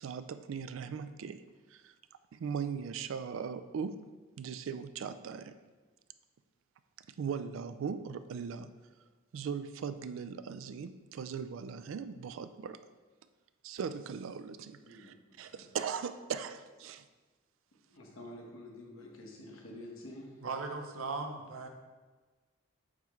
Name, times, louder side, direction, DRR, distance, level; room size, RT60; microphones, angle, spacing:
voice 1, 0.0-1.4 1.7-1.9 2.3-4.0 4.4-5.5 7.2-8.7 9.3-12.8 13.6-17.0, right 6 dB, 70° right, 12 dB, 0.3 m, -39 dB
voice 2, 14.8-15.6 17.9-20.3, left 1 dB, 85° left, -1 dB, 1.2 m, -49 dB
voice 3, 20.4-21.7, right 4 dB, 90° right, 5 dB, 0.7 m, -38 dB
8.7 x 3.5 x 3.1 m, 1.3 s
head